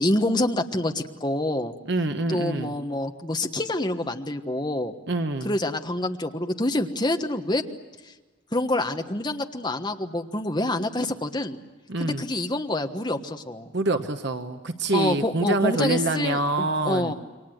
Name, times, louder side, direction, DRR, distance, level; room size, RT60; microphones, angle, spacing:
voice 1, 0.0-1.7 2.3-4.9 5.4-7.6 8.5-11.6 12.0-13.7 14.9-17.1, left 1 dB, 20° left, 5 dB, 1.3 m, -27 dB
voice 2, 1.9-2.7 5.1-5.5 11.9-12.2 13.7-17.1, right 2 dB, 55° right, 7 dB, 1.1 m, -26 dB
28.5 x 23.5 x 7.9 m, 1.2 s
head